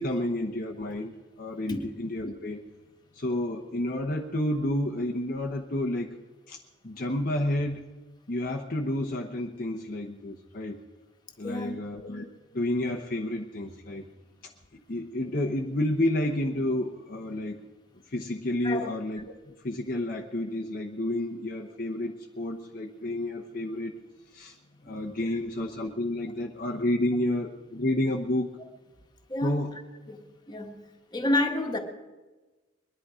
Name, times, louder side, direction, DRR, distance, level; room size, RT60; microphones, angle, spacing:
voice 1, 0.0-2.6 3.1-6.2 6.5-7.9 8.3-10.8 11.4-12.3 12.5-14.1 14.4-14.5 14.9-17.6 18.1-24.0 24.3-24.6 24.8-28.6 29.4-29.8, left 1 dB, 45° left, 0 dB, 0.9 m, -30 dB
voice 2, 11.4-11.7 18.6-19.0 24.9-25.0 29.3-29.5 30.1-30.8 31.1-31.8, left 1 dB, 20° left, 2 dB, 1.6 m, -29 dB
22.5 x 11.0 x 5.0 m, 1.2 s
head